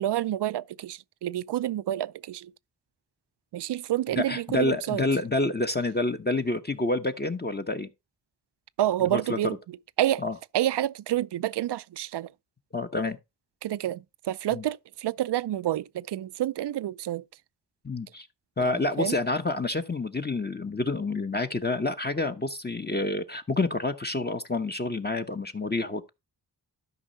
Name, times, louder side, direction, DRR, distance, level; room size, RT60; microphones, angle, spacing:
voice 1, 0.0-2.5 3.5-5.0 8.8-10.2 10.5-12.3 13.6-17.2 18.6-18.7 19.0-19.2, right 13 dB, 75° right, 0.5 m, -29 dB
voice 2, 4.2-7.9 9.1-9.4 10.2-10.3 12.7-13.2 14.5-14.6 17.8-18.3 18.6-26.1, left 2 dB, 25° left, 0.9 m, -28 dB
12.5 x 5.4 x 3.9 m
cardioid pair, 60°, 41 cm